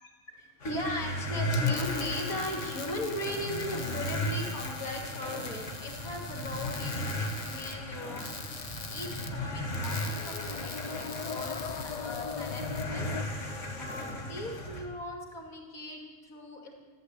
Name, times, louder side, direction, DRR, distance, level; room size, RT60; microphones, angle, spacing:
voice 1, 0.0-13.1 13.3-16.7, left 1 dB, 75° left, 0 dB, 3.1 m, -38 dB
sound 1, 0.6-14.8, left 1 dB, 55° left, 2.3 m, -35 dB
sound 2, 1.2-3.6 10.1-13.2, left 6 dB, 90° left, 0.3 m, -40 dB
sound 3, 1.4-12.8, left 4 dB, 30° left, 1.1 m, -44 dB
14.5 x 11.5 x 8.3 m, 1.4 s
omnidirectional pair, 1.5 m